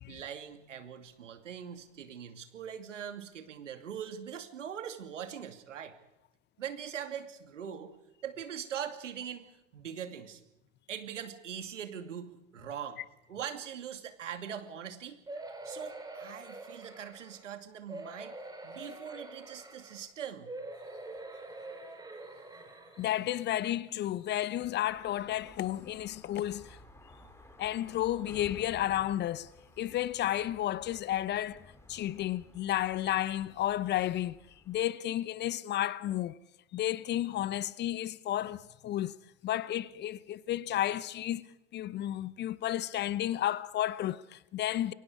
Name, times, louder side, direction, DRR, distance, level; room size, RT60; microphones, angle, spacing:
voice 1, 0.1-6.0 6.6-7.9 8.2-10.4 10.9-13.0 13.3-15.2 15.6-20.6, right 8 dB, 75° right, 2.6 m, -42 dB
sound 1, 15.3-17.4 17.9-20.1 20.4-23.3 23.9-24.0 24.3-24.4, right 2 dB, 10° right, 5.0 m, -45 dB
voice 2, 23.0-26.8 27.6-29.5 29.8-34.4 34.7-36.4 36.7-39.2 39.4-41.5 41.7-44.9, left 13 dB, 30° left, 0.8 m, -32 dB
sound 2, 24.8-34.8, left 1 dB, 5° left, 3.3 m, -55 dB
28.5 x 23.5 x 4.9 m
figure-of-eight pair, 90°, 38 cm